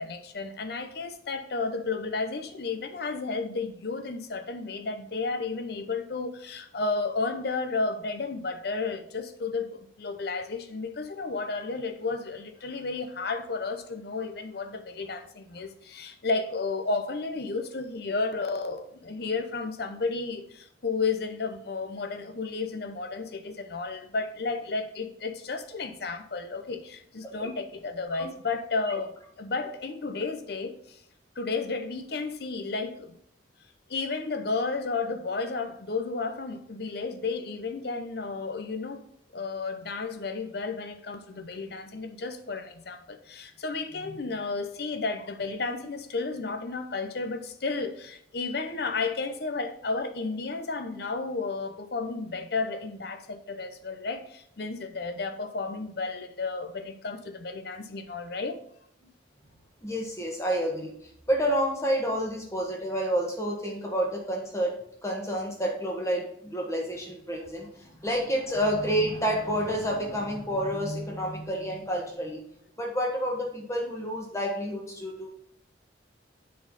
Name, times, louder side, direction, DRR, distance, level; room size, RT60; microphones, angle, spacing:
voice 1, 0.0-31.0 31.4-33.2 33.9-39.0 39.3-58.6, left 4 dB, 55° left, 0.7 m, -32 dB
voice 2, 59.8-60.9 61.3-64.8 65.0-72.4 72.8-75.3, equal, 15° left, 1.5 m, -29 dB
7.6 x 4.2 x 5.5 m
head